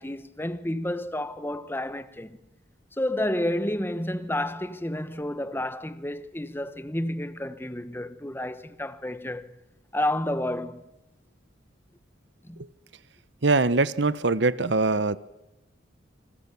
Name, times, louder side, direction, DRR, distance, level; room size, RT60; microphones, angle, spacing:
voice 1, 0.0-2.4 2.9-9.5 9.9-10.9 12.4-12.6, left 1 dB, 10° left, 1.1 m, -30 dB
voice 2, 13.4-15.2, right 3 dB, 65° right, 1.0 m, -23 dB
29.0 x 25.5 x 7.1 m
head